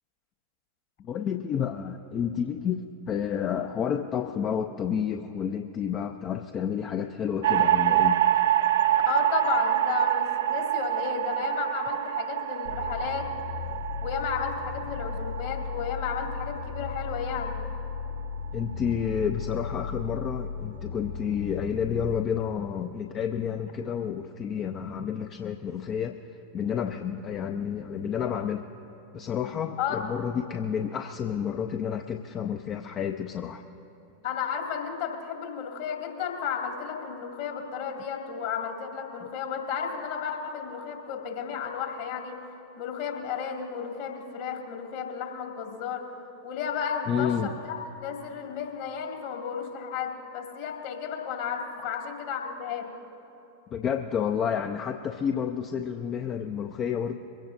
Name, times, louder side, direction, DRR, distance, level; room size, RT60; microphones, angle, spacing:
voice 1, 1.0-8.2 18.5-26.2 26.5-28.6 29.1-33.6 47.1-47.5 53.7-57.2, left 8 dB, 30° left, 6 dB, 0.5 m, -30 dB
sound 1, 7.4-17.8, right 12 dB, 60° right, 0.4 m, -26 dB
voice 2, 9.1-13.3 14.0-17.5 29.8-30.0 34.2-42.4 42.8-46.1 46.4-47.7 48.0-52.9, left 7 dB, 50° left, 2 dB, 2.2 m, -33 dB
sound 2, 12.6-22.2, left 5 dB, 80° left, 2.4 m, -36 dB
23.0 x 16.5 x 2.6 m, 3.0 s
figure-of-eight pair, 90°, 0 cm